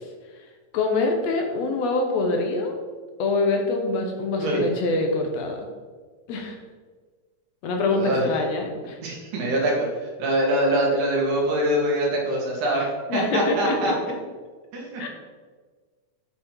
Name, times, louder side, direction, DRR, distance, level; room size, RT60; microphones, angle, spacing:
voice 1, 0.7-2.8 3.2-5.6 6.3-6.6 7.6-9.0 13.1-13.9 15.0-15.1, left 3 dB, 70° left, 3 dB, 2.0 m, -25 dB
voice 2, 7.9-8.3 9.0-9.9 10.2-13.9 14.7-15.1, right 1 dB, 85° right, -2 dB, 3.3 m, -24 dB
8.1 x 5.7 x 4.5 m, 1.5 s
omnidirectional pair, 3.4 m